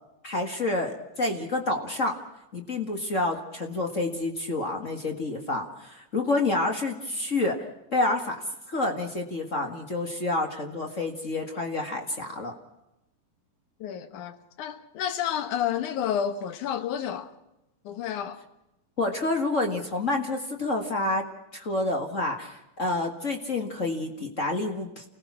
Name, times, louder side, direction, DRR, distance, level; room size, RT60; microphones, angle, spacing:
voice 1, 0.2-2.1 2.5-7.6 7.9-8.4 8.7-12.5 19.0-21.2 21.5-25.0, left 2 dB, 40° left, 1.0 m, -28 dB
voice 2, 13.8-17.3 17.8-18.5, left 9 dB, 65° left, 2.4 m, -30 dB
29.5 x 17.0 x 6.1 m
omnidirectional pair, 4.2 m